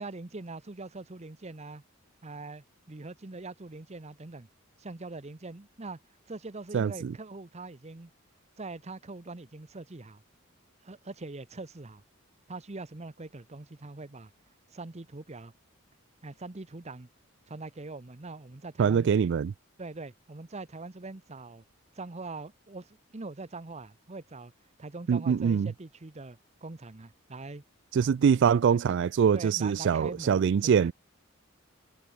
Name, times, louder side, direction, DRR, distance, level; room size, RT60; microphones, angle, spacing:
voice 1, 0.0-1.8 2.2-4.5 4.8-6.0 6.3-8.1 8.6-10.2 10.8-12.0 12.5-14.3 14.7-15.5 16.2-17.1 17.5-19.2 19.8-21.6 21.9-24.5 24.8-27.6 29.3-30.9, right 3 dB, 30° right, 0.9 m, -42 dB
voice 2, 6.7-7.1 18.8-19.5 25.1-25.7 27.9-30.9, right 7 dB, 60° right, 0.3 m, -24 dB
head